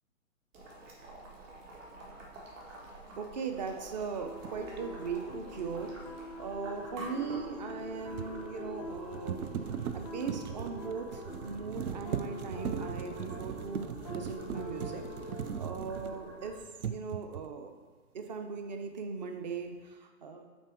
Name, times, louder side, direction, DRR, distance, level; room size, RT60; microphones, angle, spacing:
Boiling, 0.5-16.6, right 2 dB, 60° right, 1.7 m, -49 dB
voice 1, 3.2-5.9 6.4-9.5 9.9-15.0 15.6-17.7 18.1-20.4, right 5 dB, 30° right, 6 dB, 0.5 m, -39 dB
sound 1, 4.2-15.5, left 1 dB, 30° left, 0.4 m, -45 dB
sound 2, 4.4-4.6 7.6-16.4 16.8-17.6, right 8 dB, 90° right, 0.5 m, -39 dB
7.3 x 3.4 x 4.5 m, 1.4 s
hypercardioid pair, 145°, 43 cm